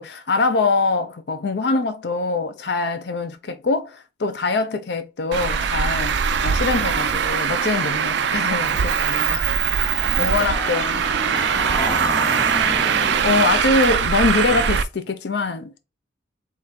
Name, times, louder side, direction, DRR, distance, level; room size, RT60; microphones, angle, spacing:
voice 1, 0.0-9.5 9.8-9.9 10.2-11.0 13.2-15.8, left 3 dB, 60° left, 0.5 m, -23 dB
sound 1, 5.3-6.3 7.3-14.4, right 1 dB, 45° left, 1.8 m, -42 dB
Traffic noise roadway noise, 5.3-14.8, right 7 dB, 65° right, 0.4 m, -21 dB
Train, 8.9-13.7, left 1 dB, 15° left, 0.6 m, -33 dB
voice 2, 10.0-13.2, right 3 dB, 20° right, 1.2 m, -41 dB
3.7 x 3.0 x 4.1 m
head